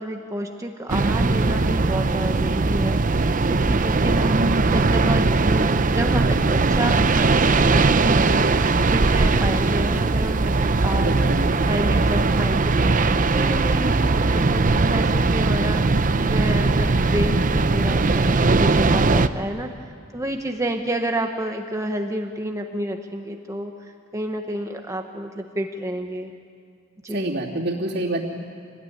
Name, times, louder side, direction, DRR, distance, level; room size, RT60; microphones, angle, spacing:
voice 1, 0.0-8.6 8.9-16.0 16.3-26.3 27.0-27.4, right 1 dB, 15° right, 4 dB, 1.1 m, -30 dB
sound 1, 0.9-19.3, right 3 dB, 40° right, 0.7 m, -19 dB
voice 2, 4.0-4.3 10.9-11.5 27.1-28.2, right 1 dB, 55° right, -8 dB, 2.8 m, -27 dB
26.5 x 19.5 x 10.0 m, 2.3 s
head